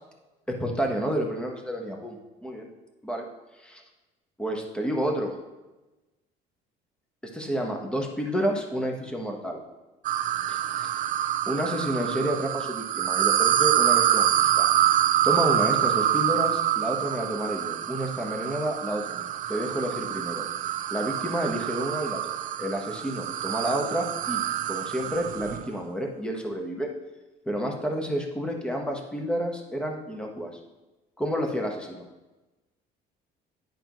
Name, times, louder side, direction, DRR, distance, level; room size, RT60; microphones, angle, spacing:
voice 1, 0.6-2.7 3.0-3.3 3.6-3.8 4.4-5.4 7.3-9.6 10.5-10.9 11.5-14.6 15.2-20.5 20.9-26.9 27.5-30.5 31.2-32.0, equal, 5° left, 2 dB, 1.1 m, -30 dB
sound 1, 10.0-25.7, right 11 dB, 50° right, 0.4 m, -26 dB
9.8 x 5.3 x 3.0 m, 1.1 s
cardioid pair, 115°, 17 cm